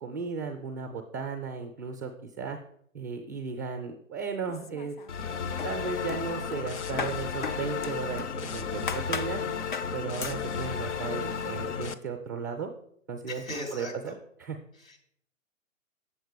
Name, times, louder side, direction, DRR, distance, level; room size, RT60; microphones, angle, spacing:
voice 1, 0.0-2.6 2.9-5.0 5.6-9.4 9.9-12.7 13.1-13.4 13.7-14.6, right 5 dB, 15° right, 4 dB, 0.5 m, -35 dB
sound 1, 4.5-5.3 5.6-8.4 8.9-9.4 9.7-9.9 10.2-10.4, left 5 dB, 40° left, 0.4 m, -37 dB
sound 2, 5.1-11.9, left 6 dB, 60° left, 0.8 m, -33 dB
voice 2, 13.3-14.2 14.8-15.0, left 1 dB, 85° left, 1 dB, 3.4 m, -38 dB
7.8 x 7.2 x 5.1 m, 0.69 s
figure-of-eight pair, 130°, 40 cm